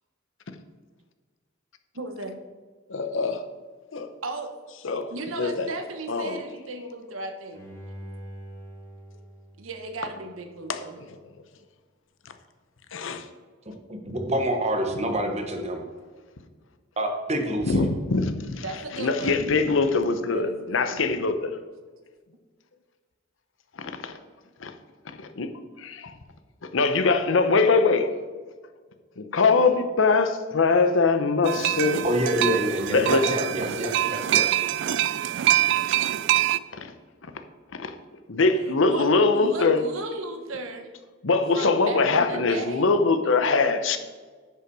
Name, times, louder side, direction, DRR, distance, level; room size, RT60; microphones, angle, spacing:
voice 1, 1.9-2.4 4.2-4.5 5.1-7.6 9.6-11.0 18.6-19.5 20.3-21.1 31.5-32.2 38.8-39.1 39.4-40.9 41.5-42.9, right 2 dB, 85° right, 6 dB, 1.1 m, -36 dB
voice 2, 2.9-3.4 3.9-4.1 4.8-5.1 5.4-5.7 6.1-6.4 10.7-10.8 12.9-13.3 17.6-18.6 18.9-21.6 24.0-24.1 24.6-24.7 25.1-25.5 25.8-26.1 26.7-28.1 29.2-32.1 32.9-33.4 36.7-36.9 37.2-37.3 37.7-37.9 38.3-39.8 41.2-44.0, left 4 dB, 70° left, 8 dB, 0.8 m, -22 dB
Bowed string instrument, 7.5-10.6 11.1-11.2, equal, 15° left, 2.2 m, -44 dB
voice 3, 13.7-15.8 17.0-17.8 32.0-34.5, right 1 dB, 35° right, 4 dB, 1.2 m, -27 dB
sound 1, 31.5-36.6, right 12 dB, 65° right, 0.4 m, -24 dB
10.0 x 5.7 x 4.8 m, 1.5 s
head